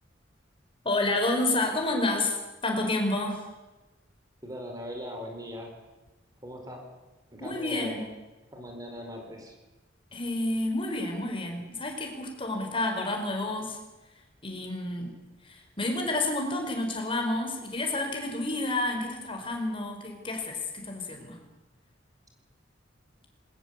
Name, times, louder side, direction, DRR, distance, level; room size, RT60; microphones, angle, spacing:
voice 1, 0.8-2.3 2.6-3.4 7.4-8.0 10.1-13.8 14.4-15.1 15.4-21.4, left 2 dB, 30° left, 3 dB, 4.9 m, -29 dB
voice 2, 4.4-5.7 6.4-6.8 7.3-8.1 8.5-9.5, equal, 20° right, 2 dB, 4.6 m, -39 dB
21.0 x 19.5 x 8.3 m, 1.1 s
head